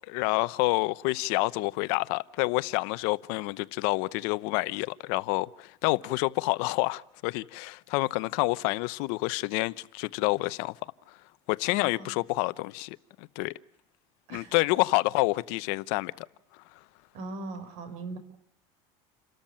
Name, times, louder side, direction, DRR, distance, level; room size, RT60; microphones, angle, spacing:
voice 1, 0.1-10.7 11.5-13.5 14.3-16.3, left 23 dB, 70° left, 0.8 m, -28 dB
voice 2, 11.7-12.1 14.3-14.5 17.1-18.2, right 3 dB, 65° right, 4.6 m, -39 dB
29.5 x 13.5 x 8.7 m
cardioid pair, 140°, 12 cm